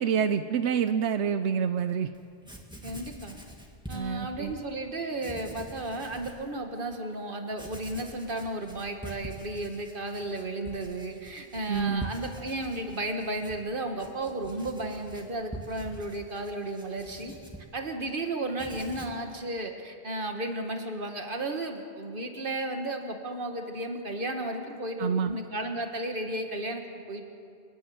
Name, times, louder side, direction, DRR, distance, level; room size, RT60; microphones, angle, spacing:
voice 1, 0.0-2.1 3.9-4.5 11.7-12.1 25.0-25.4, right 7 dB, 90° right, 10 dB, 1.0 m, -27 dB
Writing, 2.1-2.2 2.4-4.6 5.1-6.4 6.9-7.0 7.5-18.2 18.5-19.3, right 1 dB, 5° right, 2.1 m, -45 dB
voice 2, 2.8-3.4 3.9-17.3 17.7-27.2, right 1 dB, 50° right, 4 dB, 2.0 m, -34 dB
28.5 x 10.5 x 9.5 m, 2.4 s
omnidirectional pair, 1.1 m